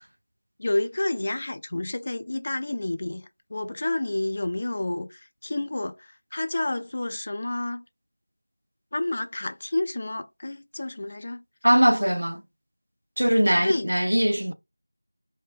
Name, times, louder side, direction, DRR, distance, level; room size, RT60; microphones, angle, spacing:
voice 1, 0.6-3.2 3.5-7.8 8.9-11.4 13.6-13.9, left 2 dB, 30° left, 0.3 m, -29 dB
voice 2, 11.6-12.4 13.2-14.5, equal, 75° right, 0.4 m, -21 dB
3.2 x 2.1 x 3.6 m
figure-of-eight pair, 175°, 0 cm